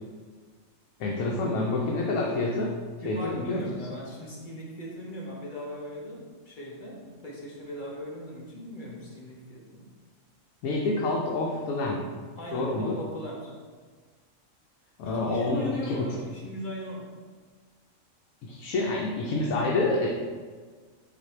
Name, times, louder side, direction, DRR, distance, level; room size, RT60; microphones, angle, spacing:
voice 1, 1.0-2.7 3.0-3.6 10.6-12.0 12.5-13.0 15.0-16.1 18.4-20.1, left 2 dB, 85° left, -2 dB, 1.0 m, -27 dB
voice 2, 3.0-9.9 12.4-13.6 15.0-17.1, equal, 45° left, -3 dB, 0.8 m, -39 dB
4.2 x 2.6 x 4.2 m, 1.5 s
omnidirectional pair, 1.4 m